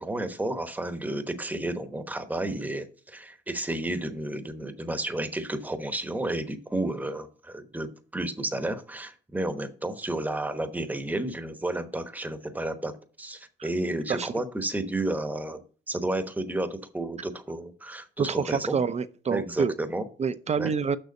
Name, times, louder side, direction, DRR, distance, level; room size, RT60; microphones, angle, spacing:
voice 1, 0.0-12.9 13.2-18.8 19.3-20.0 20.6-20.7, right 1 dB, 10° right, 1.0 m, -32 dB
voice 2, 18.2-19.7 20.2-21.0, right 6 dB, 35° right, 0.6 m, -27 dB
6.7 x 6.1 x 5.4 m
cardioid pair, 85°, 19 cm